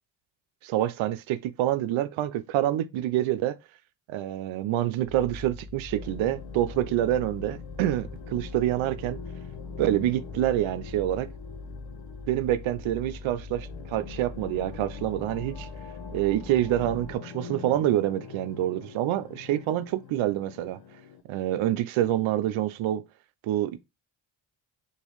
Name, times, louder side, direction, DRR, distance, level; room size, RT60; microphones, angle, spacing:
voice 1, 0.6-3.5 4.1-9.2 9.8-11.3 12.3-15.7 16.1-20.8 21.3-23.0 23.4-23.8, right 13 dB, 75° right, 0.5 m, -27 dB
sound 1, 5.1-17.2, left 3 dB, 30° left, 0.4 m, -42 dB
sound 2, 6.0-21.2, left 8 dB, 50° left, 0.8 m, -45 dB
3.0 x 2.6 x 2.9 m
supercardioid pair, 60°, 48 cm